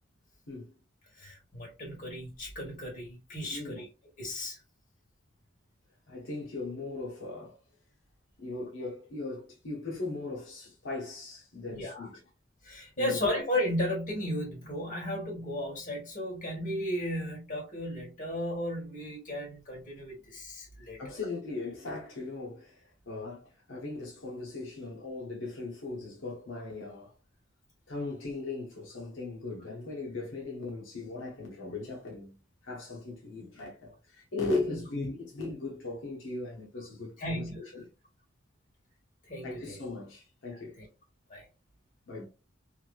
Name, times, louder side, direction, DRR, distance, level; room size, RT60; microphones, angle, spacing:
voice 1, 1.2-3.9 4.2-4.6 11.7-12.1 12.6-21.2 34.7-34.8 37.2-37.6 39.3-39.8 40.8-40.9 41.3-41.4, left 1 dB, 40° left, 1.6 m, -35 dB
voice 2, 3.5-3.8 6.1-7.6 8.4-12.2 13.0-13.2 21.0-27.1 27.9-32.4 32.6-37.9 39.4-40.8 42.1-42.3, left 3 dB, 85° left, 0.9 m, -38 dB
3.0 x 2.6 x 2.4 m
head